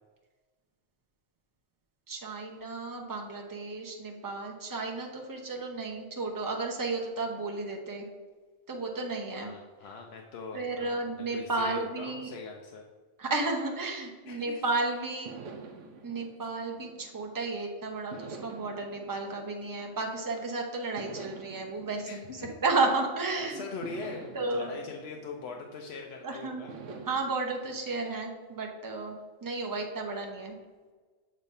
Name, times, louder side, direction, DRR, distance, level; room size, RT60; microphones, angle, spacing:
voice 1, 2.1-8.1 8.7-9.5 10.5-12.3 13.2-15.3 16.0-22.2 22.6-23.6 24.3-24.8 26.2-26.6 27.1-30.6, right 3 dB, 20° right, 1 dB, 0.7 m, -33 dB
voice 2, 9.4-12.8 14.3-14.6 22.0-22.5 23.4-26.7, left 4 dB, 65° left, 1 dB, 0.8 m, -42 dB
sound 1, 14.3-14.7 15.2-17.5 18.1-20.4 21.0-23.2 23.8-26.1 26.7-27.2, right 4 dB, 90° right, 1.0 m, -47 dB
7.0 x 3.2 x 5.3 m, 1.4 s
omnidirectional pair, 1.2 m